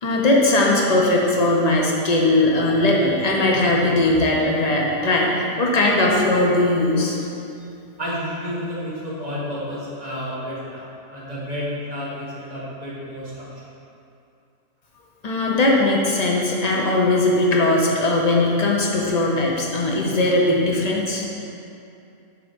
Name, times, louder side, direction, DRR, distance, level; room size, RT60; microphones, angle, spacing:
voice 1, 0.0-5.3 5.6-7.3 15.2-21.2, left 2 dB, 45° left, -2 dB, 0.5 m, -19 dB
voice 2, 8.0-10.8 11.1-13.5, equal, 30° right, -7 dB, 1.2 m, -30 dB
6.0 x 3.6 x 5.2 m, 2.6 s
omnidirectional pair, 1.6 m